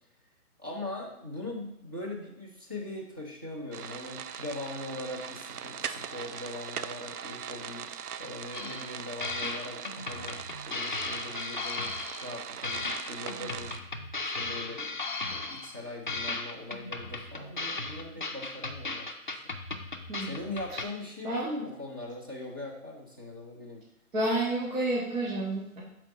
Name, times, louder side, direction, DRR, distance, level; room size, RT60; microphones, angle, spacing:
voice 1, 0.6-10.4 10.7-11.9 12.2-13.8 14.4-14.9 15.2-19.4 20.2-23.8, left 1 dB, 15° right, -4 dB, 0.5 m, -40 dB
sound 1, 3.7-13.8, right 8 dB, 85° right, 0.5 m, -40 dB
sound 2, 8.5-8.9 9.2-12.4 12.6-15.8 16.1-20.8, left 3 dB, 35° left, 0.4 m, -36 dB
voice 2, 20.1-20.8 21.2-21.5 24.1-25.8, right 1 dB, 60° right, -6 dB, 1.7 m, -30 dB
5.9 x 4.3 x 4.1 m, 0.78 s
figure-of-eight pair, 145°, 44 cm